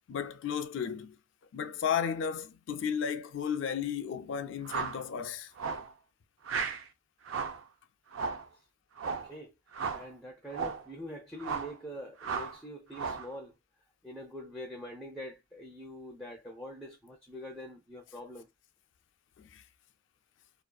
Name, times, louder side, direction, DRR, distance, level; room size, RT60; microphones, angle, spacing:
voice 1, 0.1-1.1 1.5-5.5 19.4-19.6, left 7 dB, 65° left, 0.4 m, -34 dB
sound 1, 4.6-5.0 5.6-5.9 6.4-6.8 7.3-7.6 8.1-8.5 9.0-9.3 9.7-10.1 10.5-10.8 11.4-11.8 12.2-12.6 12.9-13.3, right 5 dB, 80° right, 0.4 m, -35 dB
voice 2, 9.0-9.5 9.9-13.6 14.0-18.5, equal, 5° left, 0.5 m, -44 dB
2.6 x 2.4 x 2.2 m
head